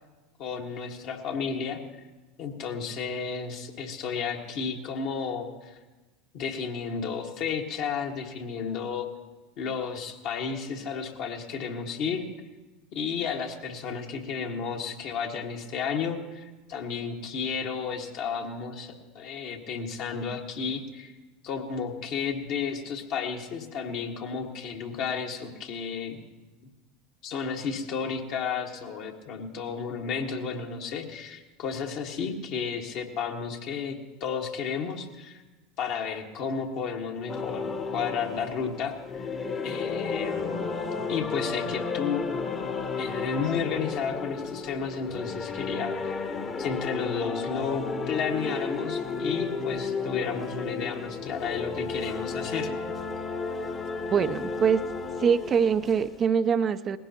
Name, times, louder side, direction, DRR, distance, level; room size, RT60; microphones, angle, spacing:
voice 1, 0.4-1.8 2.4-5.8 6.3-9.1 9.6-12.2 12.9-21.1 21.4-26.2 27.2-35.4 35.8-39.3 39.6-40.7 41.1-42.2 43.0-46.2 46.6-52.7, left 6 dB, 55° left, 2 dB, 1.7 m, -32 dB
sound 1, 37.3-56.2, left 4 dB, 30° left, 1.2 m, -33 dB
voice 2, 54.1-54.8 55.2-57.0, right 7 dB, 35° right, 11 dB, 0.5 m, -23 dB
20.0 x 16.5 x 2.9 m, 1.2 s
hypercardioid pair, 80°, 0 cm